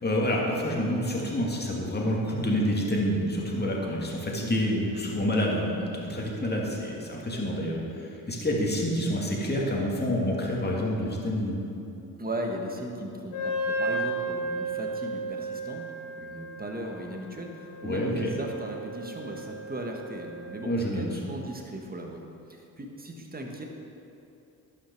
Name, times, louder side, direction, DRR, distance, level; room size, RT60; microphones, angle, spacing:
voice 1, 0.0-11.6 17.8-18.3 20.7-21.0, equal, 25° left, -3 dB, 2.3 m, -28 dB
voice 2, 12.2-15.8 16.1-22.2 22.5-23.7, right 1 dB, 25° right, 1 dB, 1.6 m, -37 dB
Wind instrument woodwind instrument, 13.3-20.7, right 2 dB, 90° left, 1.8 m, -34 dB
11.5 x 5.9 x 4.6 m, 2.8 s
supercardioid pair, 55°, 39 cm